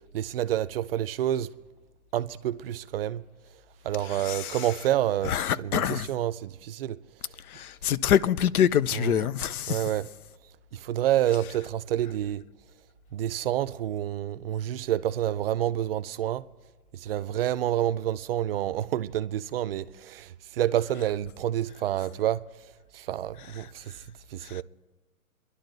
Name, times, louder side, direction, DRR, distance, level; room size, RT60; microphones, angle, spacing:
voice 1, 0.1-1.5 2.1-3.2 3.8-7.0 8.9-9.3 9.7-10.1 10.7-12.4 13.1-16.4 16.9-22.4 22.9-23.9 24.3-24.6, right 12 dB, 45° right, 0.5 m, -28 dB
voice 2, 5.3-6.1 7.5-9.8 24.5-24.6, left 9 dB, 85° left, 0.7 m, -25 dB
29.5 x 11.5 x 4.0 m
hypercardioid pair, 155°, 43 cm